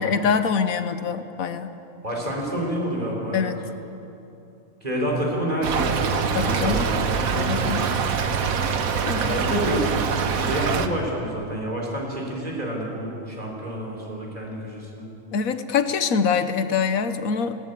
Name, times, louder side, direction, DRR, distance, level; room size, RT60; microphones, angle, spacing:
voice 1, 0.0-1.7 3.3-3.6 6.3-6.9 7.4-7.9 9.1-9.6 15.3-17.6, left 6 dB, 75° left, 10 dB, 1.4 m, -24 dB
voice 2, 2.0-3.5 4.8-7.9 9.2-10.0 10.4-15.1, right 1 dB, 25° right, -1 dB, 4.6 m, -28 dB
Stream / Trickle dribble, 5.6-10.9, right 6 dB, 75° right, 1.5 m, -24 dB
20.0 x 18.0 x 8.4 m, 2.8 s
omnidirectional pair, 1.5 m